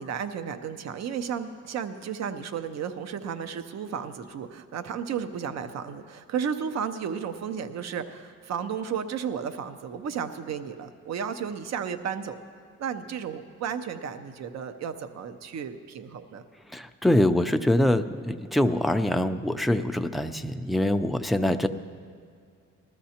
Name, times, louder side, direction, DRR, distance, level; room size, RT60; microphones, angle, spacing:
voice 1, 0.0-12.4 12.8-16.4, right 7 dB, 60° right, 10 dB, 0.7 m, -33 dB
voice 2, 16.7-21.7, left 1 dB, ahead, 7 dB, 0.4 m, -24 dB
19.5 x 13.0 x 2.9 m, 2.2 s
cardioid pair, 90°, 30 cm